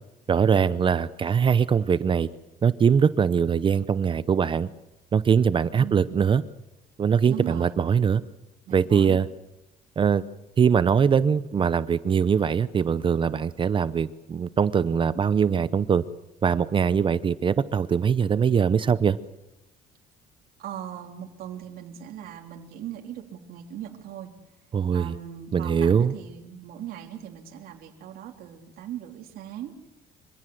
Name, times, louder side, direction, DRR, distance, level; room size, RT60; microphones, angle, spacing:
voice 1, 0.3-2.3 2.6-4.7 5.1-6.4 7.0-8.2 8.7-9.3 10.0-10.2 10.6-16.0 16.4-19.2 24.7-25.1 25.5-26.1, right 7 dB, 30° right, 15 dB, 0.8 m, -22 dB
voice 2, 5.8-6.2 7.3-7.8 8.6-9.2 20.6-24.3 24.9-29.7, right 10 dB, 70° right, 1 dB, 3.4 m, -39 dB
25.5 x 16.5 x 7.8 m, 0.95 s
cardioid pair, 115°, 16 cm